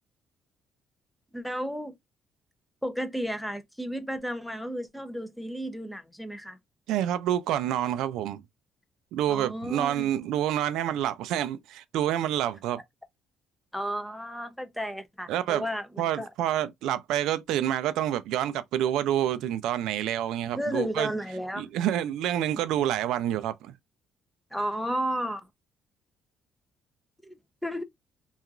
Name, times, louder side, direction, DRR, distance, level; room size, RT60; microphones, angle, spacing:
voice 1, 1.3-1.9 2.8-6.6 9.3-10.1 13.7-16.3 20.5-21.7 24.5-25.4 27.2-27.4 27.6-27.8, equal, ahead, 0.6 m, -33 dB
voice 2, 6.9-8.4 9.1-12.8 15.3-15.7 16.0-21.1 21.6-23.7, right 11 dB, 85° right, 0.3 m, -28 dB
2.8 x 2.3 x 2.3 m
cardioid pair, 115°, 0 cm